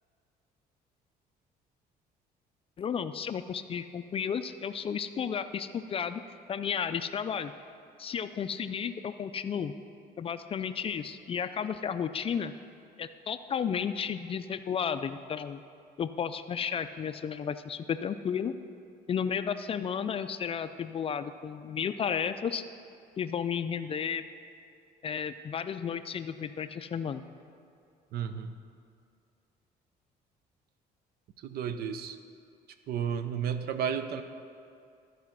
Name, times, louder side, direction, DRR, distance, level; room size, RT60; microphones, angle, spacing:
voice 1, 2.8-6.2 6.5-7.5 8.0-9.7 10.2-12.5 13.0-15.6 16.0-18.5 19.1-22.6 23.2-24.2 25.0-27.2, left 7 dB, 35° left, 11 dB, 0.4 m, -33 dB
voice 2, 28.1-28.5 31.4-32.2 32.9-34.2, right 8 dB, 65° right, 10 dB, 0.6 m, -32 dB
13.5 x 4.9 x 5.9 m, 2.4 s
cardioid pair, 110°, 17 cm